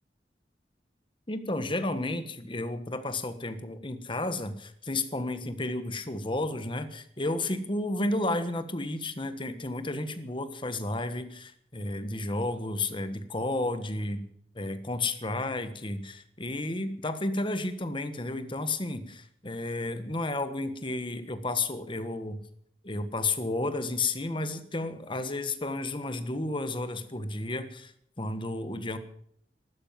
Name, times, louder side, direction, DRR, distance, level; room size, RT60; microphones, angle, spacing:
voice 1, 1.3-14.2 14.5-22.4 22.8-27.9 28.2-29.0, left 2 dB, 30° left, 10 dB, 1.4 m, -32 dB
14.0 x 12.5 x 7.4 m, 0.68 s
head